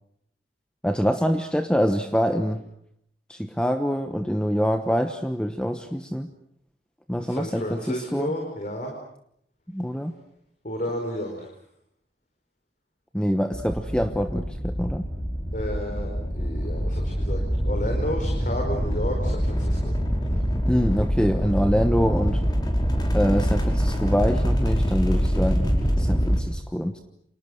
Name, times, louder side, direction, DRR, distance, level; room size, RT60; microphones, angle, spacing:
voice 1, 0.8-2.6 3.3-6.3 7.1-8.3 9.7-10.1 13.1-15.1 20.7-22.4 23.1-27.0, equal, 5° left, 6 dB, 1.1 m, -25 dB
voice 2, 7.2-9.0 10.6-11.5 15.5-20.5, equal, 45° left, 2 dB, 4.8 m, -32 dB
sound 1, 13.5-26.4, equal, 25° left, 5.5 m, -25 dB
30.0 x 27.0 x 6.6 m, 0.73 s
head